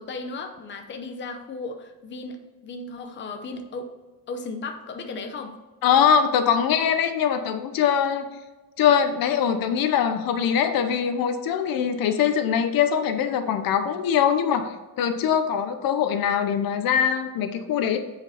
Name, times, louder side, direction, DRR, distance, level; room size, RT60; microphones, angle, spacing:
voice 1, 0.0-2.4 2.6-3.9 4.3-5.6 11.7-11.9, left 3 dB, 35° left, 5 dB, 0.7 m, -35 dB
voice 2, 5.8-8.3 8.8-18.0, left 8 dB, 75° left, 9 dB, 0.8 m, -22 dB
8.1 x 5.2 x 4.3 m, 1.2 s
cardioid pair, 175°, 35 cm